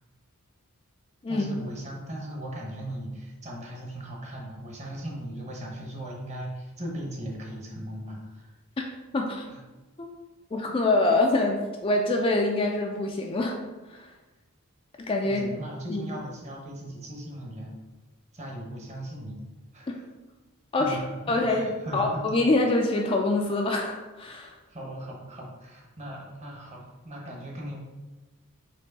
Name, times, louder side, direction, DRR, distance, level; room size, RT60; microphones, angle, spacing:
voice 1, 1.3-8.5 15.2-17.7 18.3-19.4 19.7-20.0 20.8-22.2 24.7-27.8, right 1 dB, 30° right, -1 dB, 0.9 m, -38 dB
voice 2, 9.1-9.4 10.0-10.1 10.5-13.6 13.9-14.1 15.1-15.4 15.9-16.0 20.7-21.0 21.3-21.7 21.9-24.5, left 2 dB, 25° left, 1 dB, 0.3 m, -25 dB
4.4 x 3.0 x 4.0 m, 1.2 s
head